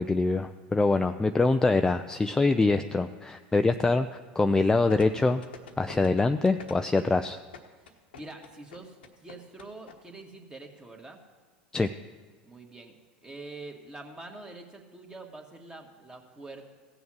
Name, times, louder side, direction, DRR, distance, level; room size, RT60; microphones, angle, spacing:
voice 1, 0.0-4.1 4.4-5.4 5.8-7.4 11.7-11.9, left 3 dB, 10° left, 8 dB, 0.4 m, -24 dB
sound 1, 4.9-9.9 10.2-10.3, left 6 dB, 85° left, 1.1 m, -46 dB
voice 2, 7.8-11.2 12.4-13.0 13.2-16.7, right 2 dB, 15° right, 2 dB, 1.9 m, -45 dB
16.0 x 7.0 x 6.3 m, 1.5 s
hypercardioid pair, 90°, 5 cm